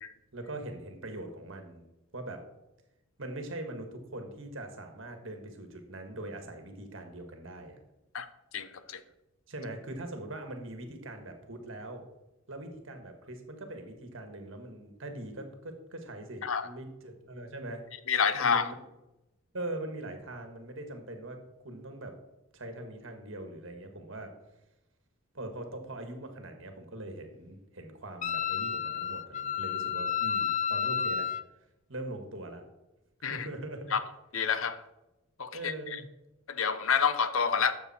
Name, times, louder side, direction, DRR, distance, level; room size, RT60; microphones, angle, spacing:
voice 1, 0.3-1.8 2.1-2.4 3.2-7.8 9.5-12.0 12.5-17.9 18.3-18.7 19.5-21.4 21.6-22.1 22.5-24.3 25.3-31.3 31.9-32.6 33.3-33.9 35.5-36.0, right 1 dB, 60° right, 5 dB, 1.7 m, -41 dB
voice 2, 8.5-9.0 16.4-16.7 18.1-18.7 33.2-33.5 33.9-34.0 34.3-34.8 35.4-35.7 36.5-37.7, left 6 dB, 70° left, 12 dB, 0.7 m, -28 dB
Wind instrument woodwind instrument, 28.2-31.4, left 8 dB, 35° left, 0.4 m, -31 dB
12.0 x 6.9 x 4.3 m, 0.95 s
head